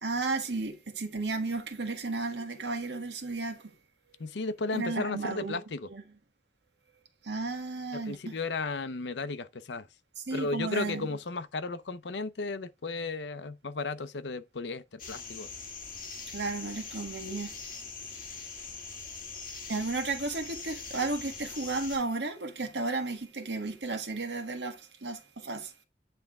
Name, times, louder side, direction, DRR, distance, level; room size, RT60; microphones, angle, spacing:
voice 1, 0.0-3.7 4.7-5.6 5.9-6.0 7.2-8.3 10.3-11.1 16.3-17.6 19.7-25.8, right 3 dB, 80° right, 1.6 m, -33 dB
voice 2, 4.2-5.9 7.9-9.9 10.3-15.5, left 3 dB, 85° left, 0.7 m, -34 dB
sound 1, 15.0-22.0, left 5 dB, 50° left, 2.2 m, -42 dB
9.3 x 3.5 x 3.6 m
head